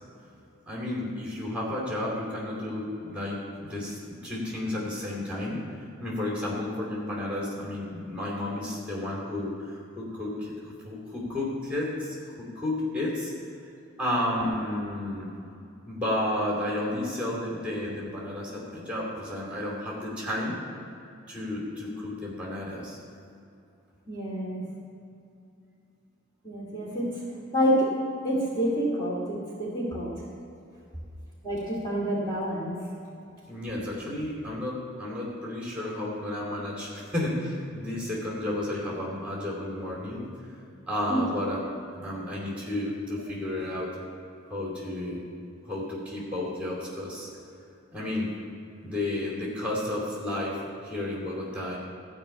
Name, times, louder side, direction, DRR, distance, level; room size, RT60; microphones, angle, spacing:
voice 1, 0.7-5.7 6.0-13.3 14.0-15.3 15.9-20.5 21.3-23.0 33.5-40.2 40.9-43.9 44.5-45.2 45.7-47.3 47.9-48.3 48.8-50.6 50.8-51.8, left 1 dB, 5° right, -4 dB, 2.8 m, -32 dB
voice 2, 24.1-24.6 26.4-27.1 27.5-27.9 28.2-30.1 31.4-32.8 41.1-41.2, equal, 20° left, -6 dB, 2.5 m, -28 dB
14.0 x 5.6 x 8.4 m, 2.6 s
head